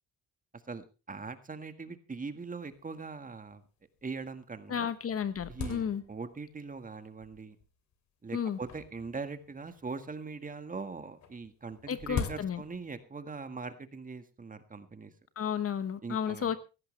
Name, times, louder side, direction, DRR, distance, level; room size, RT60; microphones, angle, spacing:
voice 1, 0.7-3.6 4.0-4.9 5.5-7.6 8.2-15.1 16.0-16.6, right 4 dB, 25° right, 10 dB, 1.7 m, -41 dB
sound 1, 2.4-2.5 2.7-2.8 3.5-3.6 4.2-4.3 4.7-6.5 7.2-7.7 8.6-9.9 11.2-13.0, left 6 dB, 65° left, 2.9 m, -41 dB
voice 2, 4.7-6.0 8.3-8.6 11.9-12.6 15.4-16.6, left 8 dB, 50° left, 13 dB, 1.2 m, -32 dB
16.5 x 14.5 x 3.3 m, 0.32 s
cardioid pair, 90°, 30 cm